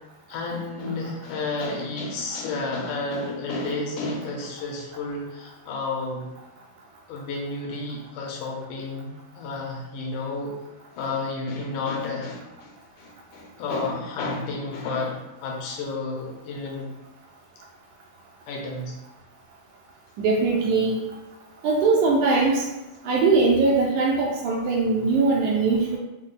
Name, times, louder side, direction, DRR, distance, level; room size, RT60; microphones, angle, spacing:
voice 1, 0.3-6.3 7.1-9.1 9.4-10.5 11.0-16.9 18.5-18.9, left 3 dB, 75° left, -1 dB, 2.2 m, -31 dB
voice 2, 20.2-21.0 21.6-22.6 23.0-26.0, right 3 dB, 80° right, -1 dB, 1.9 m, -21 dB
6.2 x 2.1 x 3.8 m, 1.0 s
omnidirectional pair, 3.9 m